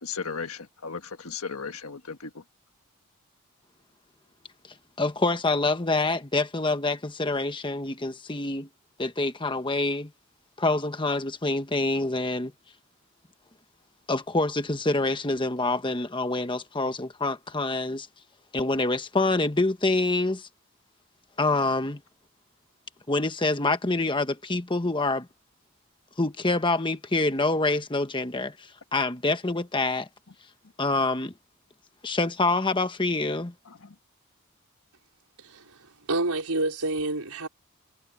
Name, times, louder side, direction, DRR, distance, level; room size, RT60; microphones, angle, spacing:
voice 1, 0.0-2.4 33.7-33.9, left 5 dB, 75° left, 1.6 m, -36 dB
voice 2, 5.0-8.7 9.0-10.1 10.6-12.5 14.1-18.1 18.5-20.5 21.4-22.0 23.1-25.3 26.2-30.1 30.8-31.3 32.0-33.5, left 2 dB, 20° left, 1.2 m, -26 dB
voice 3, 35.4-37.5, right 2 dB, 90° right, 4.5 m, -29 dB
head